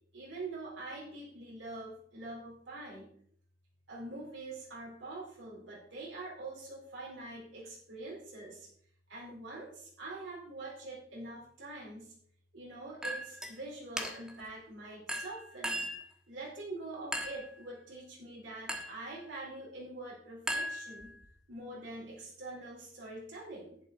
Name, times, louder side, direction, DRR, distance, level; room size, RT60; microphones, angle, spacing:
voice 1, 0.1-3.1 3.9-8.7 9.1-12.1 12.5-15.9 16.3-21.2 21.5-23.8, right 2 dB, 80° right, -4 dB, 4.3 m, -45 dB
Chink clink, 13.0-13.5 14.0-14.4 15.1-16.1 17.1-17.5 18.7-19.0 20.5-21.3, equal, 5° right, 1.3 m, -37 dB
11.0 x 8.7 x 4.1 m, 0.62 s
head